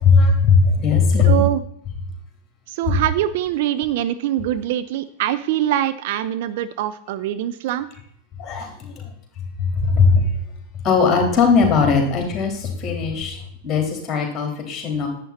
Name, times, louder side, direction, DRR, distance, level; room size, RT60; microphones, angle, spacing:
voice 1, 0.0-1.4 2.9-3.0 8.4-9.0 9.6-10.3 10.8-13.4 13.6-15.1, left 4 dB, 25° left, 3 dB, 3.7 m, -18 dB
voice 2, 1.2-1.6 2.7-7.9, right 12 dB, 50° right, 12 dB, 0.5 m, -23 dB
11.0 x 8.5 x 4.2 m, 0.69 s
figure-of-eight pair, 90°, 0 cm